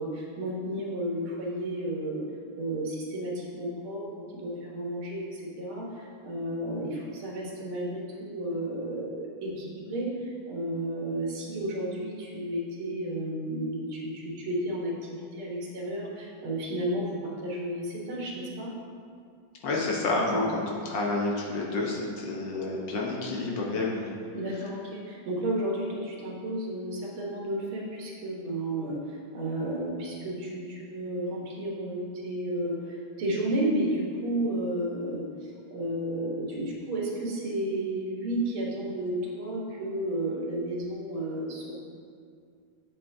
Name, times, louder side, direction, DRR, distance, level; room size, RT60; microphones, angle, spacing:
voice 1, 0.0-2.2 2.6-4.1 4.3-18.7 20.3-20.5 24.3-41.7, right 1 dB, 85° right, -3 dB, 2.1 m, -32 dB
voice 2, 19.6-24.1, left 2 dB, 65° left, -2 dB, 1.7 m, -29 dB
8.4 x 8.2 x 2.7 m, 2.3 s
omnidirectional pair, 2.2 m